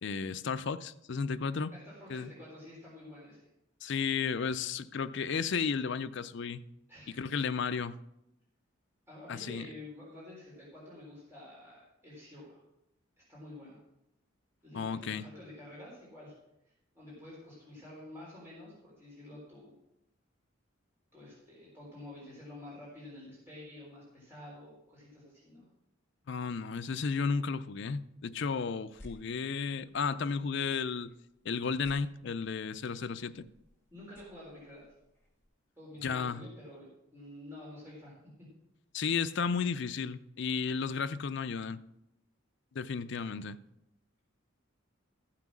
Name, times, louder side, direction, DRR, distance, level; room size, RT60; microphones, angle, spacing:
voice 1, 0.0-1.7 2.1-2.3 3.8-6.6 7.2-8.0 9.3-9.7 14.7-15.3 26.3-31.1 31.4-33.4 36.0-36.4 38.9-41.8 42.7-43.6, left 5 dB, 55° left, 0.5 m, -33 dB
voice 2, 1.7-3.4 6.9-7.2 9.1-12.6 13.3-13.8 14.6-16.3 16.9-19.8 21.1-25.7 33.9-34.8 35.8-36.9 37.1-38.1, left 1 dB, 10° right, 3.9 m, -49 dB
sound 1, 28.8-35.5, left 1 dB, 10° left, 1.9 m, -59 dB
14.0 x 5.9 x 6.1 m
head